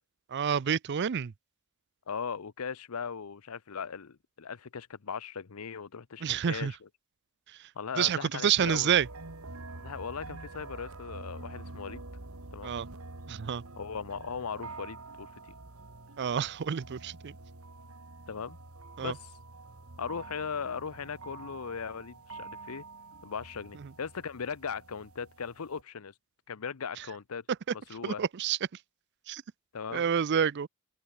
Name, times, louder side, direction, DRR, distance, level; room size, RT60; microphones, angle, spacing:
voice 1, 0.3-1.3 6.2-6.7 8.0-9.1 12.6-12.9 13.3-13.6 16.2-17.3 19.0-19.1 28.0-28.6 29.3-29.4 29.9-30.7, right 8 dB, 50° right, 0.4 m, -28 dB
voice 2, 2.1-6.9 7.8-8.9 9.8-12.0 12.5-12.7 13.8-15.6 18.3-18.6 19.0-19.3 20.0-22.8 23.2-26.1 26.5-27.4 27.7-28.2 29.7-30.1, left 6 dB, 85° left, 0.7 m, -38 dB
sound 1, 8.6-25.8, right 3 dB, 80° right, 2.4 m, -47 dB
head